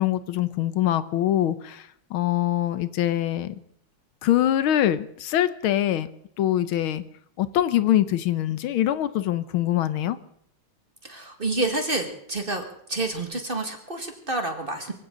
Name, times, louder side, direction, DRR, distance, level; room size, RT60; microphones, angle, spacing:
voice 1, 0.0-3.5 4.2-6.1 6.4-7.0 7.4-10.2, left 12 dB, 85° left, 14 dB, 1.7 m, -24 dB
voice 2, 11.0-12.6 12.9-14.9, right 2 dB, 25° right, 4 dB, 1.9 m, -28 dB
24.0 x 15.5 x 3.8 m, 0.70 s
omnidirectional pair, 2.2 m